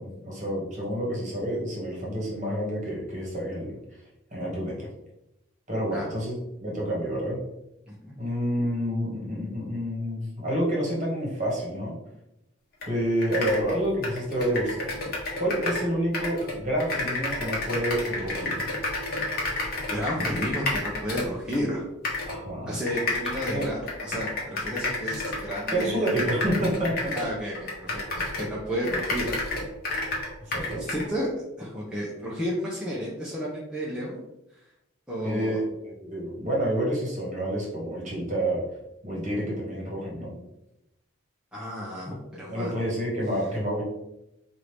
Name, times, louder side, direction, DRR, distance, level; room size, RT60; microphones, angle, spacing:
voice 1, 0.0-3.8 4.3-4.9 5.7-7.4 8.2-11.9 12.9-14.9 15.4-18.7 22.3-22.7 23.5-23.7 25.7-27.1 30.4-30.8 35.2-38.6 39.0-40.3 42.5-43.8, right 1 dB, 35° right, -4 dB, 1.2 m, -28 dB
sound 1, 12.8-12.9 13.2-15.9 16.1-21.6 22.0-22.4 22.9-28.5 28.8-31.1, left 2 dB, 50° left, 1.0 m, -30 dB
voice 2, 19.9-21.8 22.7-26.1 27.1-29.3 30.7-34.2 35.1-35.6 41.5-42.7, equal, 5° right, -6 dB, 0.6 m, -32 dB
4.6 x 2.6 x 3.3 m, 0.89 s
head